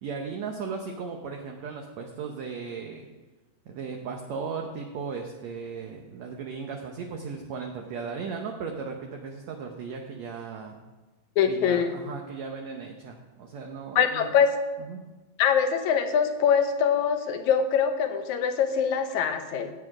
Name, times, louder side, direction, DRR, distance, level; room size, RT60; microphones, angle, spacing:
voice 1, 0.0-3.1 3.7-10.8 11.4-14.3 14.8-15.0, right 5 dB, 70° right, 2 dB, 1.8 m, -36 dB
voice 2, 11.4-12.0 14.0-14.5 15.4-19.7, left 7 dB, 70° left, 7 dB, 2.0 m, -23 dB
15.5 x 8.4 x 4.9 m, 1.2 s
omnidirectional pair, 3.9 m